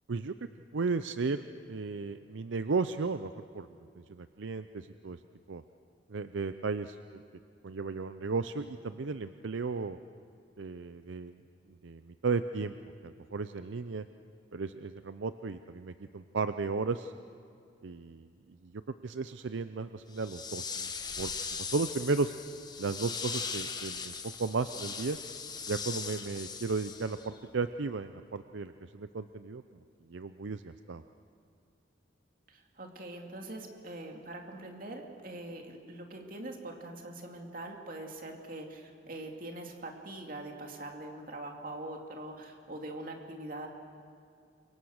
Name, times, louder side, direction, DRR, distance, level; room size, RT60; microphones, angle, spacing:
voice 1, 0.7-1.4 1.7-3.7 4.1-5.2 5.5-5.6 6.1-7.2 7.6-10.0 10.6-11.4 11.7-12.7 13.0-14.1 14.5-17.1 17.8-18.3 18.6-18.7 19.0-20.9 21.2-21.3 21.6-22.3 22.8-24.1 24.4-25.2 25.7-29.6 30.1-31.0, right 4 dB, 75° right, 11 dB, 0.6 m, -34 dB
sound 1, 20.1-27.4, left 5 dB, 20° left, 1.3 m, -39 dB
voice 2, 32.5-43.7, right 1 dB, 45° right, 2 dB, 2.5 m, -43 dB
28.5 x 23.5 x 6.5 m, 2.4 s
head